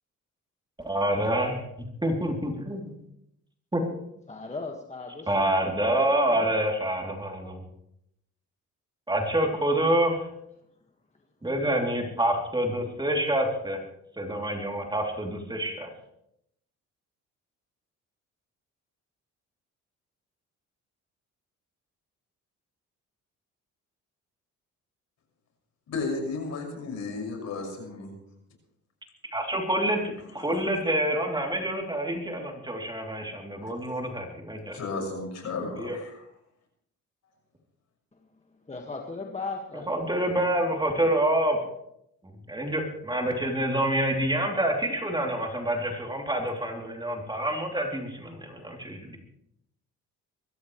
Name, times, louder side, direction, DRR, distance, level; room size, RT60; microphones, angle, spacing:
voice 1, 0.8-1.5 2.0-3.0 3.7-3.8 5.3-7.6 9.1-10.3 11.4-13.8 14.2-15.9 29.3-34.8 35.8-36.0 39.9-41.6 42.2-49.2, right 1 dB, 15° right, 1 dB, 3.2 m, -27 dB
voice 2, 4.3-6.5 38.1-38.2 38.7-40.6, left 3 dB, 20° left, 1 dB, 1.8 m, -38 dB
voice 3, 25.9-28.1 33.6-33.7 34.7-36.2, left 3 dB, 65° left, 2 dB, 6.1 m, -33 dB
24.0 x 14.0 x 3.3 m, 0.76 s
cardioid pair, 90°, 30 cm